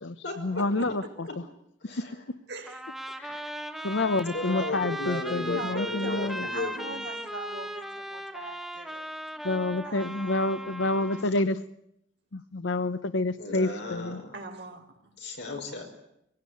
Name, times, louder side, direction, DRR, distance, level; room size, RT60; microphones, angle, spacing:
voice 1, 0.0-1.4 3.2-3.5 3.8-6.5 9.4-11.6 12.3-14.2, left 2 dB, 80° left, 13 dB, 0.9 m, -29 dB
voice 2, 0.5-0.9 2.5-3.2 5.4-9.1 9.8-10.5 14.3-15.1, right 3 dB, 60° right, 4 dB, 3.9 m, -42 dB
Trumpet, 2.7-11.3, right 1 dB, ahead, 1.2 m, -38 dB
voice 3, 4.3-7.0 13.4-14.3 15.2-15.8, left 2 dB, 65° left, 3 dB, 5.5 m, -34 dB
24.0 x 17.0 x 9.3 m, 0.77 s
head